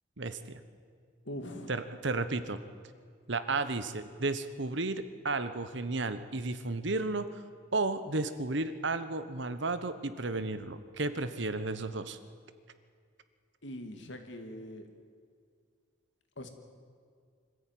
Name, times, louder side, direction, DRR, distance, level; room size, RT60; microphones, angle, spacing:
voice 1, 0.2-0.6 1.7-2.6 3.3-7.3 7.7-12.2, right 3 dB, 70° right, 11 dB, 1.2 m, -33 dB
voice 2, 1.2-1.7 13.6-14.9 16.4-16.5, left 1 dB, 70° left, 5 dB, 2.5 m, -42 dB
25.5 x 14.5 x 9.3 m, 2.1 s
head